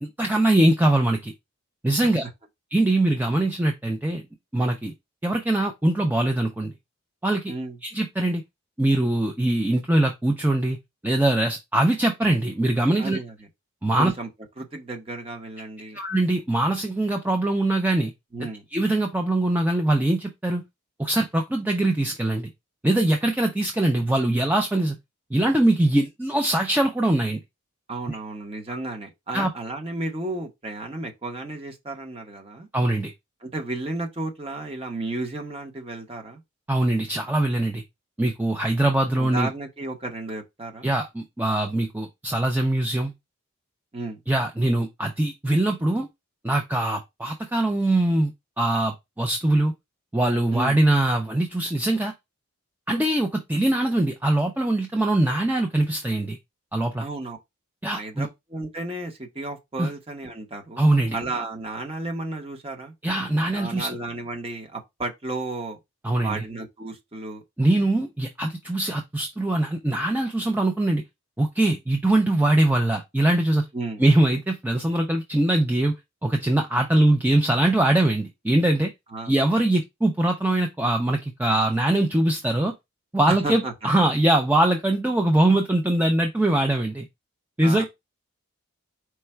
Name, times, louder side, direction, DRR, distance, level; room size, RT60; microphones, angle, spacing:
voice 1, 0.0-1.3 1.8-2.2 2.7-4.2 4.5-4.9 5.2-6.7 7.2-7.5 7.8-8.4 8.8-10.8 11.0-13.2 13.8-14.1 15.9-18.1 18.7-20.6 21.0-22.5 22.8-25.0 25.3-27.4 28.7-28.8 29.3-29.5 32.7-33.1 36.7-37.8 38.2-39.5 40.8-43.1 44.3-46.1 46.4-48.3 48.6-49.7 50.1-52.1 52.9-56.4 56.7-57.1 57.8-58.3 59.8-59.9 60.8-61.2 63.0-63.9 66.0-66.4 67.6-71.0 71.4-73.6 74.0-75.9 76.2-78.9 79.2-82.7 83.1-87.1 87.6-87.8, right 1 dB, 10° right, 0.4 m, -22 dB
voice 2, 7.5-7.8 13.0-13.3 14.0-14.3 14.6-16.0 18.3-18.6 27.9-32.7 33.4-36.4 39.2-40.9 43.9-44.2 50.5-50.8 57.0-57.4 57.9-60.8 61.1-62.9 63.5-65.8 66.2-67.4 73.7-74.0 79.1-79.5 83.3-83.7 87.6-87.8, right 2 dB, 25° right, 0.9 m, -33 dB
4.6 x 2.2 x 4.3 m
head